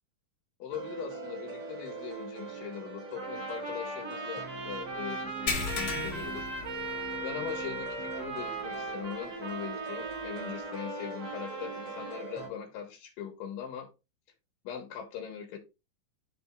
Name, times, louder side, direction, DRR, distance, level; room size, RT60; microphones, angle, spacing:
voice 1, 0.6-6.5 7.2-13.9 14.6-15.6, left 9 dB, 80° left, 2.6 m, -41 dB
sound 1, 0.7-12.5, right 5 dB, 45° right, 2.4 m, -42 dB
Trumpet, 3.1-12.2, right 2 dB, 25° right, 2.2 m, -39 dB
sound 2, 5.5-7.3 7.7-7.9 8.4-8.5 10.1-10.2, left 4 dB, 45° left, 1.5 m, -35 dB
11.0 x 3.8 x 3.4 m
omnidirectional pair, 4.0 m